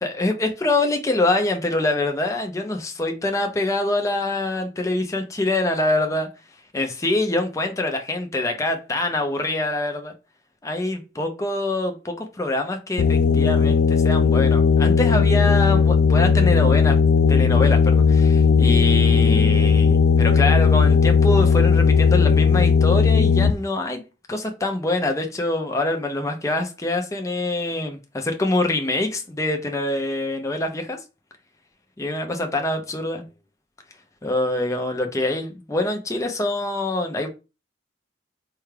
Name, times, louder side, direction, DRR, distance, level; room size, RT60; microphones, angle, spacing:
voice 1, 0.0-6.3 6.7-10.1 10.6-17.0 17.3-24.0 24.3-31.0 32.0-33.2 34.2-37.3, left 2 dB, 15° left, 0.5 m, -25 dB
sound 1, 13.0-23.5, left 5 dB, 85° left, 0.3 m, -16 dB
4.6 x 2.3 x 3.2 m
head